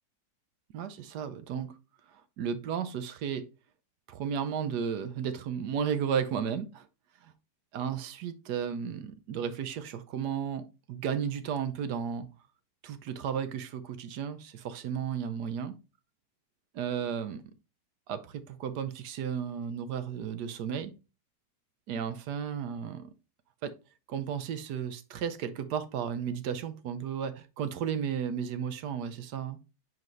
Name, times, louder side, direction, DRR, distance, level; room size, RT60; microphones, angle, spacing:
voice 1, 0.7-1.7 2.4-3.5 4.1-6.9 7.2-7.3 7.7-12.3 12.8-15.7 16.7-17.4 18.1-20.9 21.9-23.1 23.6-23.7 24.1-29.6, right 7 dB, 75° right, 1.3 m, -34 dB
7.6 x 4.8 x 3.1 m
omnidirectional pair, 1.8 m